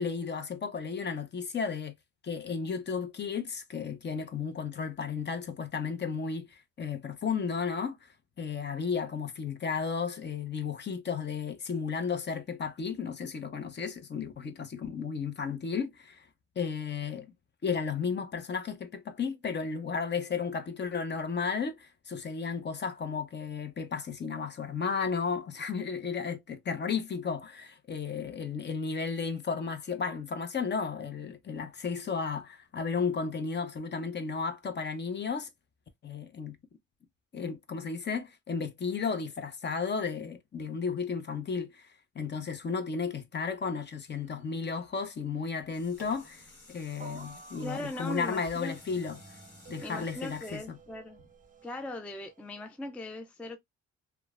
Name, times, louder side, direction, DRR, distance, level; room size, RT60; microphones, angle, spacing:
voice 1, 0.0-1.9 2.2-16.3 16.6-17.3 17.6-35.5 36.0-36.6 37.3-49.2 49.7-50.8, left 5 dB, 35° left, 0.7 m, -34 dB
sound 1, 43.7-44.7 45.1-45.2 46.1-46.2 47.0-52.8, right 3 dB, 25° right, 0.7 m, -53 dB
sound 2, 45.7-51.7 52.2-52.3, left 1 dB, 55° left, 1.6 m, -54 dB
voice 2, 47.6-48.8 49.8-51.2 51.6-53.6, left 1 dB, 5° left, 0.3 m, -39 dB
3.0 x 2.2 x 2.3 m
cardioid pair, 90°, 30 cm